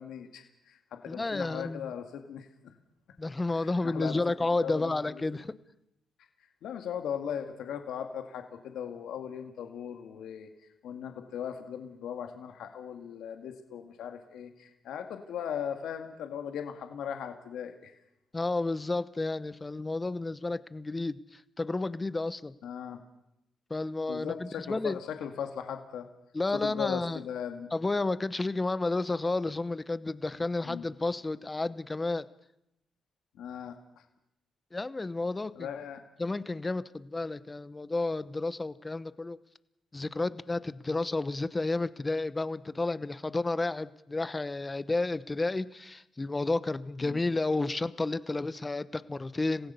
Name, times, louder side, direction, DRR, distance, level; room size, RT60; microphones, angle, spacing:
voice 1, 0.0-2.8 3.5-4.2 4.6-5.2 6.6-10.5 10.8-17.9 22.6-23.0 24.1-26.1 26.6-27.7 30.7-30.9 33.3-34.0 35.6-36.0, left 8 dB, 80° left, 5 dB, 2.0 m, -38 dB
voice 2, 1.1-1.9 3.2-5.5 18.3-22.5 23.7-25.0 26.3-27.2 27.7-32.2 34.7-35.7 36.2-39.4 39.9-49.7, left 2 dB, 20° left, 15 dB, 0.9 m, -31 dB
26.0 x 16.0 x 6.9 m, 0.84 s
cardioid pair, 90°, 0 cm